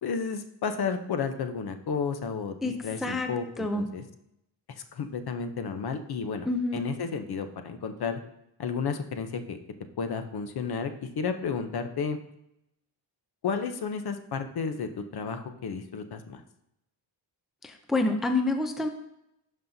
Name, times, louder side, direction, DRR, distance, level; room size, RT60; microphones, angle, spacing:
voice 1, 0.0-4.0 4.9-8.2 8.6-9.6 10.0-12.2 13.4-16.4, left 5 dB, 55° left, 8 dB, 0.8 m, -32 dB
voice 2, 3.0-3.8 6.5-6.8 17.9-18.9, left 2 dB, ahead, 5 dB, 0.5 m, -27 dB
11.5 x 5.4 x 2.7 m, 0.81 s
wide cardioid pair, 135°, 46 cm